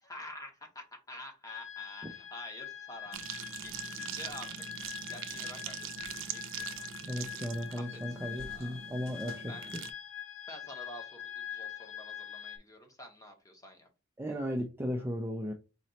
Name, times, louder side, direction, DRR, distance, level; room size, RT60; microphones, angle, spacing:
voice 1, 0.0-4.5 5.1-6.7 7.5-7.9 8.4-8.8 9.5-9.7 10.5-13.9, left 1 dB, 15° left, 1.1 m, -48 dB
sound 1, 1.5-12.6, left 9 dB, 65° left, 0.8 m, -44 dB
sound 2, 3.1-9.9, right 9 dB, 70° right, 0.5 m, -43 dB
voice 2, 7.0-9.8 14.2-15.5, equal, 10° right, 0.4 m, -36 dB
4.2 x 3.0 x 4.0 m
head